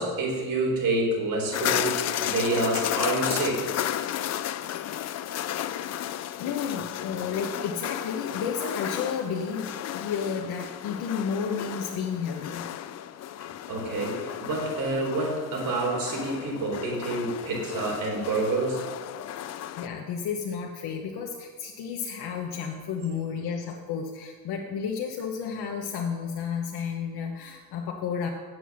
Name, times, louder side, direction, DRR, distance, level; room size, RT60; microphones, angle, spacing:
voice 1, 0.0-3.7 13.4-18.8, right 2 dB, 60° right, -2 dB, 3.9 m, -28 dB
sound 1, 1.5-19.9, left 11 dB, 45° left, 0.4 m, -33 dB
voice 2, 6.4-12.6 19.8-28.3, left 6 dB, 80° left, 1 dB, 1.1 m, -32 dB
9.1 x 7.7 x 6.3 m, 1.5 s
cardioid pair, 120°, 38 cm